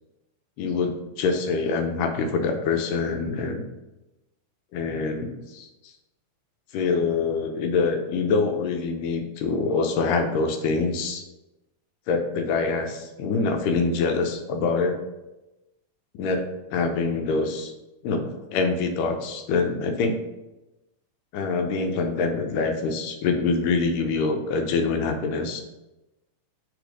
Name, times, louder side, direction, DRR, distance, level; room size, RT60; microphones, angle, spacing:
voice 1, 0.6-3.6 4.7-5.7 6.7-11.2 12.1-15.0 16.1-17.7 18.0-20.2 21.3-25.6, left 4 dB, 90° left, 5 dB, 2.3 m, -25 dB
5.1 x 4.1 x 4.9 m, 1.0 s
omnidirectional pair, 3.6 m